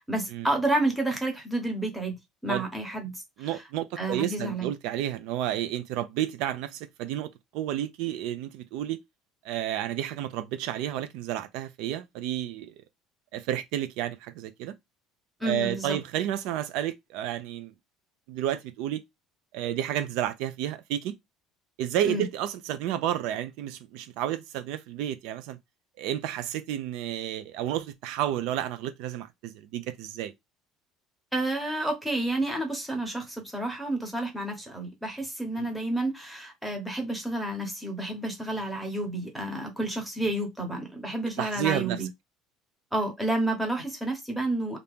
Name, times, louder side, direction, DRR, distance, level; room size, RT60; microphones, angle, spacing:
voice 1, 0.1-3.6 4.0-4.7 15.4-16.0 22.0-22.3 31.3-42.1 42.9-44.8, right 1 dB, 5° right, 0.9 m, -30 dB
voice 2, 3.4-9.0 9.4-12.7 13.3-14.7 15.4-17.7 18.3-19.0 19.5-21.1 21.8-25.6 26.0-30.3 35.6-35.7 41.4-42.0, right 11 dB, 70° right, 0.4 m, -31 dB
2.8 x 2.5 x 3.4 m
cardioid pair, 160°, 0 cm